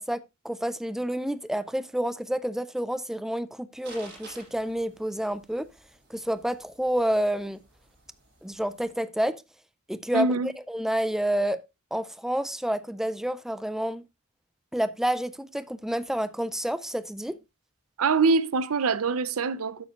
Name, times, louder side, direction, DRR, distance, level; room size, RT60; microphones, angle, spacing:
voice 1, 0.0-5.7 6.1-7.6 8.4-9.4 9.9-11.6 11.9-14.0 14.7-17.4, right 1 dB, ahead, 0.4 m, -29 dB
sound 1, 3.8-9.0, right 2 dB, 50° right, 7.3 m, -52 dB
voice 2, 10.1-10.5 18.0-19.8, right 4 dB, 75° right, 0.7 m, -24 dB
12.0 x 8.6 x 2.4 m
head